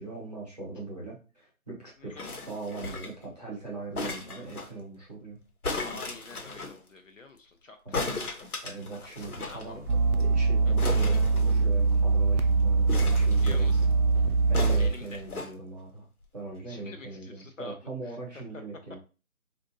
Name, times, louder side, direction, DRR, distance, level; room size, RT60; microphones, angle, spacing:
voice 1, 0.0-2.1 2.5-5.4 7.8-8.2 8.6-9.9 10.1-13.9 14.5-16.1 16.3-19.0, right 3 dB, 30° right, -5 dB, 1.0 m, -40 dB
sound 1, 2.2-3.2 3.9-4.7 5.6-6.7 7.9-9.6 9.9-10.0 10.2-10.3 10.8-11.9 12.9-13.8 14.5-15.5 16.2-16.3, left 3 dB, 85° left, 1.1 m, -35 dB
voice 2, 5.8-8.7 9.0-9.8 10.7-10.8 13.3-13.8 14.8-15.2 16.7-17.8 18.0-18.6, left 4 dB, 60° left, 5 dB, 0.6 m, -47 dB
sound 2, 9.2-15.4, left 4 dB, 45° left, 0.9 m, -49 dB
sound 3, 9.9-14.9, right 4 dB, 75° right, 0.5 m, -23 dB
3.6 x 2.5 x 2.6 m, 0.33 s
figure-of-eight pair, 175°, 43 cm